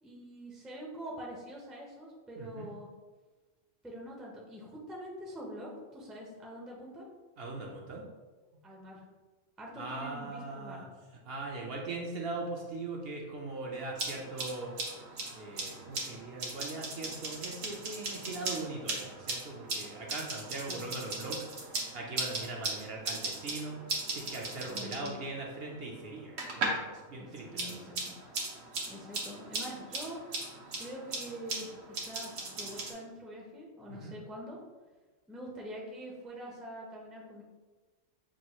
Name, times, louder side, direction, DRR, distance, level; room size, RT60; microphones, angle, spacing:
voice 1, 0.0-2.9 3.8-7.1 8.6-9.0 9.6-10.9 20.7-21.2 24.7-25.3 27.2-28.1 28.9-30.2 30.8-34.6 35.3-37.4, equal, ahead, -3 dB, 0.4 m, -45 dB
voice 2, 2.4-2.7 7.4-8.1 9.8-10.9 11.2-14.7 15.3-21.5 21.9-27.8 33.9-34.2, right 3 dB, 60° right, -1 dB, 0.7 m, -40 dB
sound 1, 13.7-26.9 27.2-32.9, right 3 dB, 85° right, 1.3 m, -38 dB
6.0 x 2.3 x 2.9 m, 1.3 s
omnidirectional pair, 1.3 m